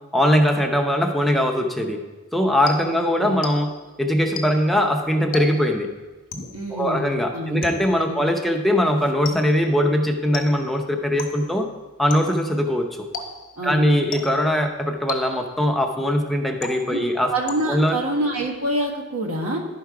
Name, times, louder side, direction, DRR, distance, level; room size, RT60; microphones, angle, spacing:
voice 1, 0.1-2.0 2.3-3.7 4.0-5.9 6.7-11.7 12.0-13.1 13.6-17.3 17.7-18.0, equal, ahead, 3 dB, 0.6 m, -21 dB
sound 1, 2.7-3.9 4.4-4.8 5.3-5.8 6.3-6.7 7.6-8.1 9.2-9.7 10.3-10.8 11.2-11.6 12.1-12.5 13.1-13.6 14.1-14.6 15.1-15.6 16.6-17.1 17.5-18.0, left 3 dB, 40° left, 0.8 m, -35 dB
voice 2, 2.8-3.4 6.5-7.6 8.1-8.3 13.6-13.9 16.9-17.0 17.3-19.6, right 1 dB, 75° right, 0 dB, 1.5 m, -27 dB
11.0 x 4.6 x 4.8 m, 1.2 s
head